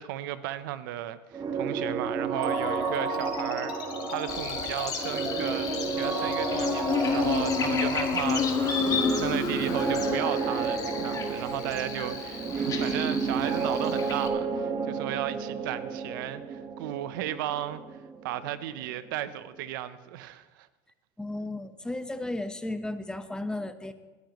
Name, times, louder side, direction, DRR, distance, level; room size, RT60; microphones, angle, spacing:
voice 1, 0.0-3.7 4.1-17.8 18.2-20.7, right 12 dB, 85° right, 0.8 m, -35 dB
sound 1, 1.3-19.0, right 5 dB, 40° right, 1.6 m, -31 dB
sound 2, 2.4-13.4, left 6 dB, 50° left, 2.4 m, -39 dB
Buzz, 4.3-14.3, left 5 dB, 35° left, 1.9 m, -31 dB
voice 2, 21.2-23.9, left 2 dB, 5° left, 1.0 m, -34 dB
21.0 x 12.5 x 3.1 m
supercardioid pair, 100°, 11 cm